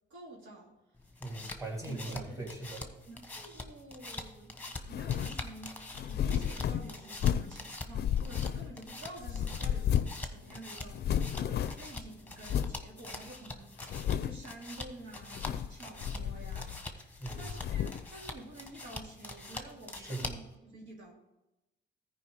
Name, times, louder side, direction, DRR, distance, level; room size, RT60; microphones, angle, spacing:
voice 1, 0.1-0.7 1.8-2.5 2.8-10.0 10.3-21.1, right 2 dB, 80° right, -2 dB, 2.4 m, -50 dB
sound 1, 1.0-20.5, left 2 dB, 10° left, 1.2 m, -45 dB
voice 2, 1.2-2.8 17.2-17.4 19.9-20.3, right 2 dB, 15° right, -2 dB, 3.0 m, -40 dB
sound 2, 4.9-5.4 5.9-7.6 7.9-8.9 9.2-10.3 10.5-10.6 10.9-11.9 12.5-12.8 13.3-13.4 13.8-14.5 15.2-15.8 16.0-16.9 17.3-18.1, left 9 dB, 55° left, 0.5 m, -32 dB
13.5 x 5.0 x 5.1 m, 0.98 s
cardioid pair, 90°, 20 cm